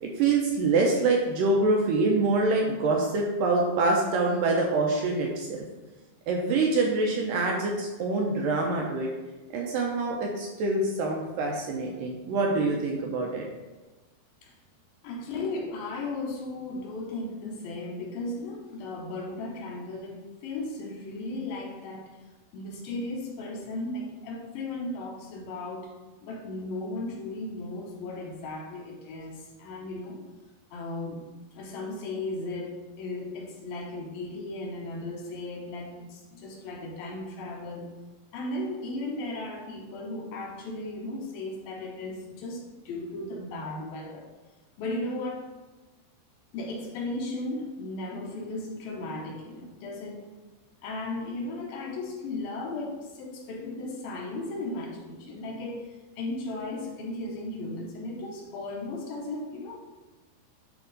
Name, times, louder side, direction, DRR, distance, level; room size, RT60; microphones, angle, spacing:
voice 1, 0.0-5.6 6.3-9.1 9.5-13.4, right 3 dB, 75° right, 0 dB, 2.1 m, -25 dB
voice 2, 15.0-22.1 22.5-25.9 26.2-30.2 30.7-31.2 31.5-37.9 38.3-44.3 44.8-45.5 46.5-50.2 50.8-55.9 56.2-59.8, left 2 dB, 70° left, 0 dB, 2.5 m, -36 dB
10.5 x 3.6 x 4.0 m, 1.2 s
omnidirectional pair, 4.7 m